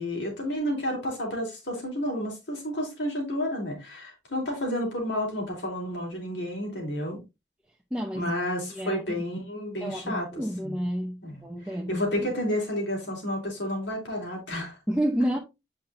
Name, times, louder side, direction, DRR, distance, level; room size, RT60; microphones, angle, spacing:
voice 1, 0.0-7.2 8.1-10.8 11.2-14.8, left 1 dB, 90° left, 3.7 m, -31 dB
voice 2, 7.9-8.3 8.7-9.2 9.8-12.3 14.9-15.4, equal, 5° right, 0.8 m, -30 dB
8.5 x 5.8 x 2.6 m
head